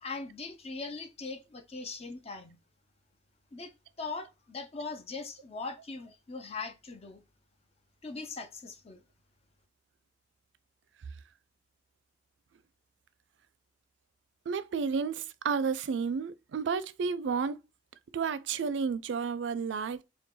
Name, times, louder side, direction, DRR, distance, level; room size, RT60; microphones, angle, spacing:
voice 1, 0.0-2.6 3.5-3.7 4.0-7.2 8.0-9.0, left 4 dB, 35° left, 0.6 m, -40 dB
voice 2, 14.5-17.5 18.1-20.0, right 5 dB, 85° right, 0.4 m, -31 dB
4.0 x 2.2 x 3.7 m
head